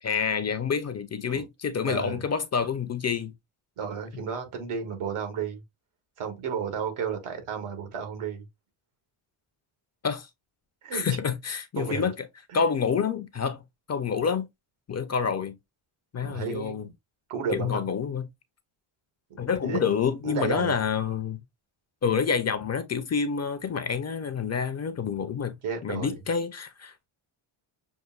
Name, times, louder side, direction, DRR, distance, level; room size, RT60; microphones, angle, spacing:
voice 1, 0.0-3.3 10.0-10.3 10.9-12.3 12.5-13.6 13.9-14.5 14.9-15.6 16.1-16.9 17.5-18.3 19.4-21.4 22.0-25.5 25.8-26.9, left 6 dB, 35° left, 0.4 m, -28 dB
voice 2, 1.8-2.2 3.8-5.6 6.2-8.4 10.8-11.2 11.8-12.0 12.5-12.6 16.2-16.8 17.3-17.9 19.6-19.8 20.2-20.8 25.6-26.1, right 6 dB, 85° right, 1.6 m, -32 dB
6.5 x 2.5 x 2.3 m
wide cardioid pair, 155°, 50 cm